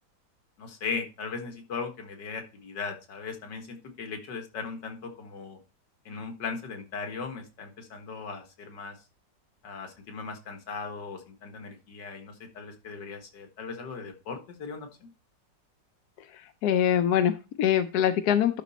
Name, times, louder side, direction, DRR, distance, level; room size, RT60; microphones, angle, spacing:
voice 1, 0.6-5.6 6.1-9.0 9.6-14.9, left 5 dB, 90° left, 5 dB, 2.2 m, -38 dB
voice 2, 16.3-18.6, left 9 dB, 70° left, 9 dB, 1.1 m, -24 dB
11.5 x 4.2 x 4.1 m, 0.30 s
omnidirectional pair, 1.8 m